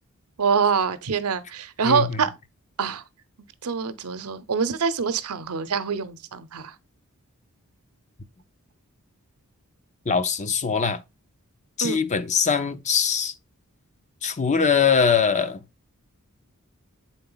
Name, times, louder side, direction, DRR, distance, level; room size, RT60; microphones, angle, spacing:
voice 1, 0.4-2.3 2.8-3.0 3.6-6.7 11.8-12.0, right 6 dB, 85° right, 0.7 m, -25 dB
voice 2, 1.8-2.2 10.1-11.0 11.8-13.3 14.2-15.6, left 6 dB, 35° left, 0.6 m, -22 dB
7.8 x 4.2 x 3.9 m
head